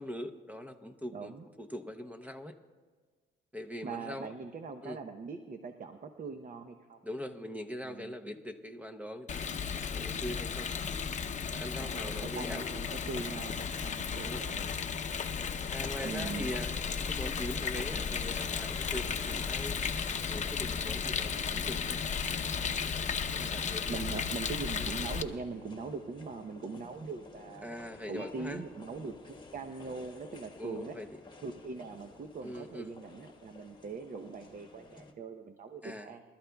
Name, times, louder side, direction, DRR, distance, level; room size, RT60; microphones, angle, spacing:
voice 1, 0.0-1.3 1.6-2.5 3.5-4.3 4.8-5.0 7.0-9.5 9.9-10.7 11.5-12.7 14.1-14.5 15.7-16.7 17.1-19.8 20.3-22.0 23.3-24.2 24.8-24.9 27.6-28.6 30.6-31.1 32.4-32.9 35.8-36.1, left 1 dB, 5° right, 6 dB, 0.7 m, -41 dB
voice 2, 1.1-1.4 3.8-7.0 7.8-8.1 11.8-14.7 16.0-16.5 23.9-27.7 28.1-31.0 31.4-36.2, right 4 dB, 45° right, 7 dB, 0.8 m, -41 dB
Rain, 9.3-25.2, left 6 dB, 35° left, 0.7 m, -34 dB
sound 1, 15.2-35.1, left 3 dB, 20° left, 1.3 m, -53 dB
23.5 x 13.0 x 2.3 m, 1.5 s
cardioid pair, 90°, 20 cm